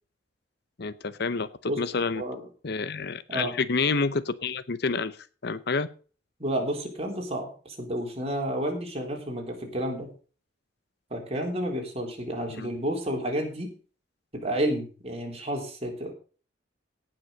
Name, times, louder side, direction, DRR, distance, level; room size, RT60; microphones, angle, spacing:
voice 1, 0.8-2.2 2.6-5.2 5.4-5.9 12.5-12.7, left 4 dB, 60° left, 15 dB, 0.8 m, -28 dB
voice 2, 6.4-10.1 11.1-13.7 14.4-16.1, right 1 dB, 35° right, 1 dB, 3.8 m, -30 dB
17.5 x 6.2 x 5.2 m, 0.38 s
head